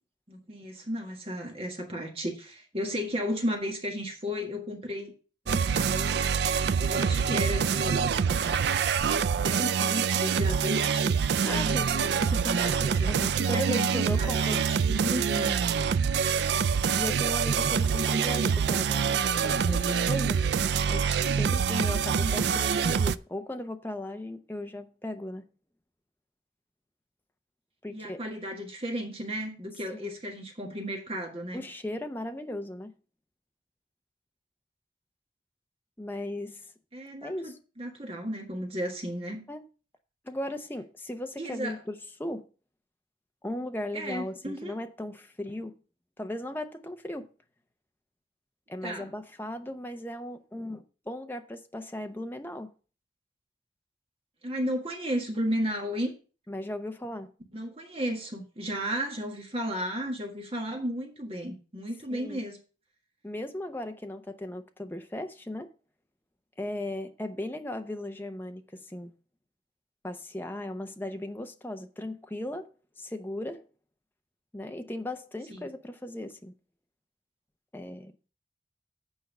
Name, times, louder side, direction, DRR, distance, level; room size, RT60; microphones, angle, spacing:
voice 1, 0.3-5.1 5.4-6.3 6.8-8.1 9.3-13.1 13.4-15.7 22.2-22.4 27.9-31.6 36.9-39.4 41.4-41.8 43.9-44.7 48.8-49.1 54.4-56.1 57.5-62.6 75.5-75.7, equal, 30° right, 1.6 m, -34 dB
sound 1, 5.5-23.2, right 6 dB, 65° right, 0.3 m, -26 dB
voice 2, 11.4-11.9 13.1-14.6 15.3-15.6 17.0-20.4 20.9-25.4 27.8-28.2 30.0-30.1 31.5-32.9 36.0-36.7 37.2-37.6 39.5-39.6 40.2-41.9 42.2-42.5 43.4-45.7 46.2-47.3 48.7-52.7 56.5-57.3 62.1-62.4 63.2-65.7 66.6-69.1 70.0-72.7 73.0-73.6 74.5-76.5 77.7-78.1, left 1 dB, 10° left, 0.7 m, -37 dB
8.1 x 4.6 x 6.6 m
head